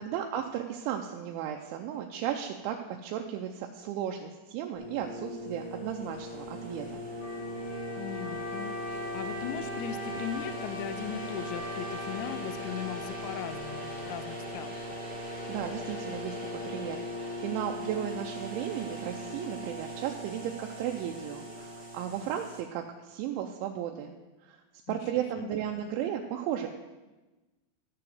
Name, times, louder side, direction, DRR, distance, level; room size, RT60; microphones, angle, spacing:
voice 1, 0.0-7.0 15.2-24.2 24.4-24.6 24.9-26.7, right 10 dB, 80° right, 3 dB, 2.9 m, -35 dB
sound 1, 4.7-22.6, equal, 5° left, 1.3 m, -39 dB
Wind instrument woodwind instrument, 7.2-14.7, right 1 dB, 60° left, 1.4 m, -42 dB
voice 2, 8.0-14.8 24.9-25.0 25.4-25.5, left 10 dB, 85° left, 11 dB, 2.6 m, -38 dB
13.0 x 4.8 x 7.6 m, 1.1 s
omnidirectional pair, 5.6 m